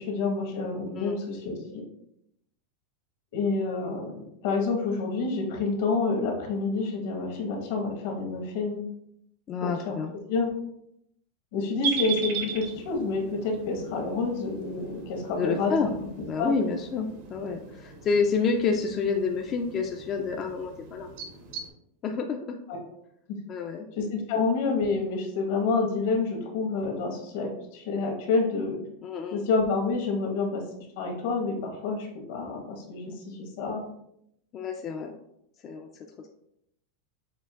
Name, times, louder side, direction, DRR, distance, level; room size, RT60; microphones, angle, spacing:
voice 1, 0.0-1.8 3.3-8.8 9.6-10.0 10.3-10.5 11.5-16.1 16.4-16.5 22.7-22.8 24.0-28.8 29.3-33.8, left 4 dB, 65° left, 2 dB, 1.1 m, -28 dB
voice 2, 9.5-10.1 15.4-15.9 16.3-21.1 22.0-22.5 23.5-23.9 24.4-24.5 29.0-29.4 33.0-33.2 34.5-35.1 35.6-36.1, left 5 dB, 30° left, 3 dB, 0.3 m, -29 dB
sound 1, 11.8-21.7, right 5 dB, 60° right, 0.7 m, -38 dB
6.5 x 2.5 x 2.4 m, 0.76 s
supercardioid pair, 150°, 0 cm